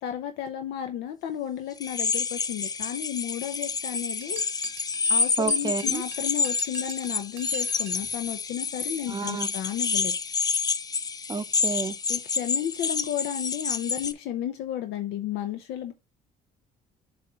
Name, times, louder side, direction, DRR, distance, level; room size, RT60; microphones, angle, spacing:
voice 1, 0.0-4.4 5.1-10.1 12.1-15.9, left 10 dB, 85° left, 0.7 m, -33 dB
sound 1, 1.8-14.1, left 5 dB, 25° left, 0.4 m, -28 dB
sound 2, 4.2-8.1, right 10 dB, 80° right, 0.9 m, -45 dB
voice 2, 5.4-6.0 9.1-9.5 11.3-11.9, right 5 dB, 25° right, 0.6 m, -30 dB
7.6 x 2.6 x 5.5 m
cardioid pair, 110°, 17 cm